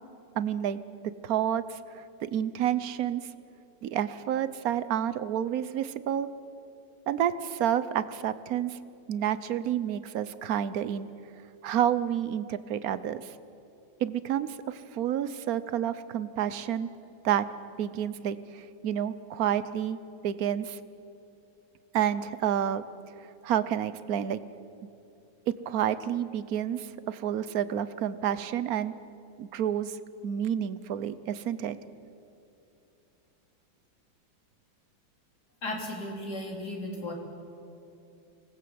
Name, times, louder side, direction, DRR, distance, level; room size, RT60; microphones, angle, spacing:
voice 1, 0.3-3.3 3.8-6.3 7.1-8.8 9.1-11.1 11.6-13.3 14.0-16.9 17.2-17.5 17.8-20.0 20.2-20.8 21.9-22.9 23.4-24.4 25.5-28.9 29.4-30.0 30.2-31.8, right 10 dB, 60° right, 14 dB, 1.2 m, -29 dB
voice 2, 35.6-37.1, left 1 dB, 55° left, 0 dB, 4.1 m, -35 dB
26.0 x 19.5 x 7.9 m, 2.8 s
omnidirectional pair, 2.1 m